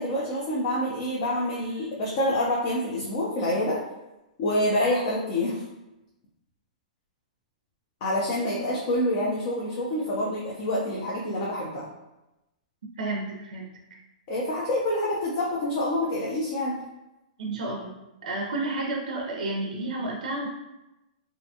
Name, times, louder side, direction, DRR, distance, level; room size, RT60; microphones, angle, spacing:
voice 1, 0.0-3.8 4.4-5.6 8.0-11.9 14.3-16.8, left 1 dB, 30° left, -4 dB, 0.4 m, -27 dB
voice 2, 13.0-13.7 17.4-20.5, right 2 dB, 70° right, 0 dB, 0.4 m, -31 dB
2.5 x 2.1 x 2.6 m, 0.97 s
hypercardioid pair, 170°, 4 cm